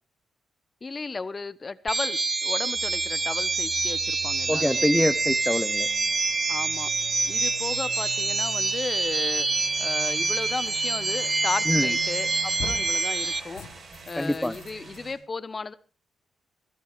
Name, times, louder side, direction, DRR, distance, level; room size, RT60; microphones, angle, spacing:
voice 1, 0.8-4.9 6.5-6.9 7.3-9.5 9.8-13.6 14.1-15.7, left 4 dB, 40° left, 16 dB, 1.0 m, -34 dB
sound 1, 1.9-13.4, right 3 dB, 40° right, 1.2 m, -26 dB
sound 2, 2.7-15.1, right 3 dB, 60° right, 7.9 m, -45 dB
voice 2, 4.5-5.9 11.7-11.9 14.1-14.6, left 1 dB, 10° left, 11 dB, 0.7 m, -25 dB
sound 3, 11.8-12.2 12.6-13.0 13.5-15.0, left 6 dB, 90° left, 1.3 m, -40 dB
22.0 x 14.5 x 3.3 m, 0.36 s
supercardioid pair, 55°, 0 cm